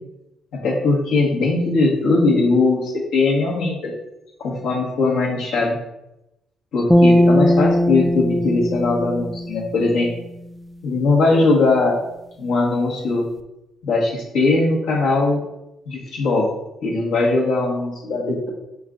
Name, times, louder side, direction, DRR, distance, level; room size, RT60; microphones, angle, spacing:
voice 1, 0.5-3.9 4.4-5.8 6.7-10.1 10.8-12.0 12.4-13.3 13.8-15.4 15.9-16.5 16.8-18.5, left 3 dB, 80° left, -3 dB, 1.2 m, -20 dB
sound 1, 6.9-10.3, left 1 dB, ahead, 0.3 m, -18 dB
5.3 x 2.4 x 3.7 m, 0.89 s
cardioid pair, 90°, 0 cm